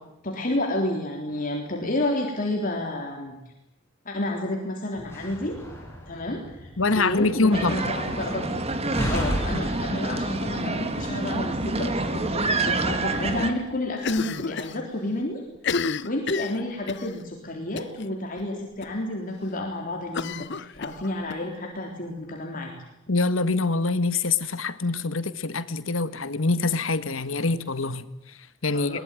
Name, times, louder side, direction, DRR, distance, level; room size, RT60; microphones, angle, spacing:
voice 1, 0.2-3.4 4.1-5.6 6.1-8.6 9.1-15.4 16.0-22.7 28.7-29.0, left 1 dB, 45° left, 0 dB, 3.7 m, -30 dB
Slam, 5.0-10.6, equal, 15° left, 7.9 m, -34 dB
voice 2, 6.8-7.9 23.1-29.0, left 3 dB, 85° left, 12 dB, 1.6 m, -25 dB
sound 1, 7.5-13.5, right 2 dB, 30° right, 2.2 m, -27 dB
Cough, 14.0-14.8 15.1-15.2 15.5-17.1 17.8-18.1 18.4-18.5 18.8-18.9 20.1-21.4, left 5 dB, 60° left, 0.9 m, -31 dB
22.5 x 21.0 x 9.2 m, 0.89 s
head